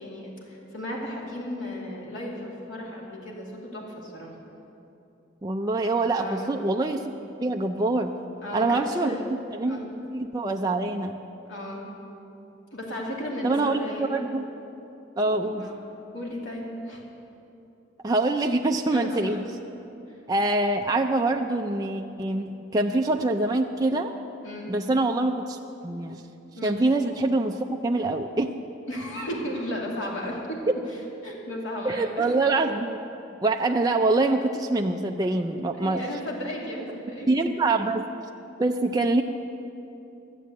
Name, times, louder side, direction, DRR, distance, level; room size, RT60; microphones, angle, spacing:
voice 1, 0.0-4.3 6.2-6.5 8.4-9.2 9.6-9.8 11.5-11.8 12.7-14.2 15.2-15.7 16.1-17.0 18.9-19.4 20.1-20.2 24.4-24.7 26.6-26.8 28.9-30.6 30.9-32.3 35.8-37.3, equal, 85° left, -3 dB, 2.5 m, -34 dB
voice 2, 5.4-7.1 7.4-8.2 8.5-9.2 9.5-9.8 10.1-11.2 13.4-14.4 15.2-15.7 18.0-19.4 20.3-24.2 24.7-25.6 25.8-26.2 26.6-28.5 31.8-33.0 33.4-36.0 37.3-38.1 38.6-39.2, right 2 dB, 20° right, 3 dB, 0.4 m, -25 dB
13.0 x 7.5 x 8.2 m, 2.9 s
head